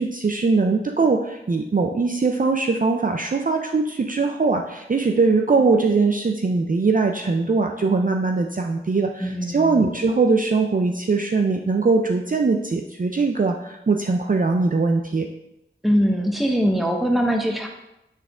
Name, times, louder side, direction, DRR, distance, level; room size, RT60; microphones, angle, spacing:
voice 1, 0.0-15.3, right 4 dB, 40° right, 4 dB, 0.4 m, -21 dB
voice 2, 9.2-9.9 15.8-17.7, equal, ahead, 2 dB, 1.0 m, -22 dB
8.2 x 3.6 x 3.6 m, 0.88 s
wide cardioid pair, 50°, 21 cm